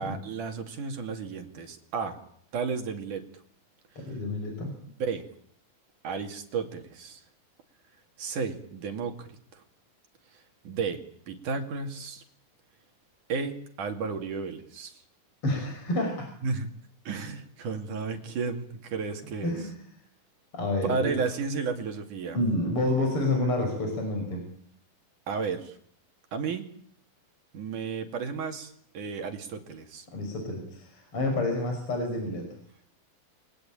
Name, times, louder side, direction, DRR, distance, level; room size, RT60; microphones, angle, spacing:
voice 1, 0.0-2.2 2.5-3.2 5.0-5.2 6.0-7.2 8.2-9.6 10.6-11.0 11.3-12.2 13.3-14.9 16.4-16.7 17.1-19.5 20.8-22.4 25.3-25.8 26.3-26.6 27.5-30.1, right 5 dB, 60° right, 5 dB, 3.8 m, -33 dB
voice 2, 4.0-4.7 15.4-16.3 19.4-19.8 20.5-21.2 22.3-24.4 30.1-32.5, left 2 dB, 35° left, 3 dB, 6.6 m, -29 dB
29.5 x 22.0 x 9.0 m, 0.66 s
omnidirectional pair, 4.3 m